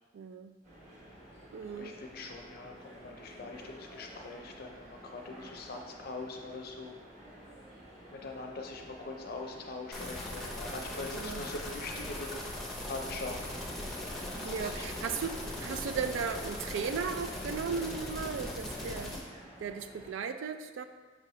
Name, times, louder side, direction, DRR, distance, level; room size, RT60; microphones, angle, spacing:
voice 1, 0.1-0.5 1.5-2.0 11.1-11.4 14.4-19.1 19.6-20.9, right 6 dB, 80° right, 9 dB, 0.3 m, -36 dB
sound 1, 0.6-20.1, right 1 dB, 40° right, 1.2 m, -51 dB
voice 2, 1.8-6.9 8.1-12.4 12.9-13.6 14.4-15.3, left 3 dB, 55° left, 3 dB, 0.5 m, -42 dB
sound 2, 9.9-19.2, left 1 dB, ahead, 0.6 m, -39 dB
5.9 x 2.8 x 3.1 m, 1.4 s
head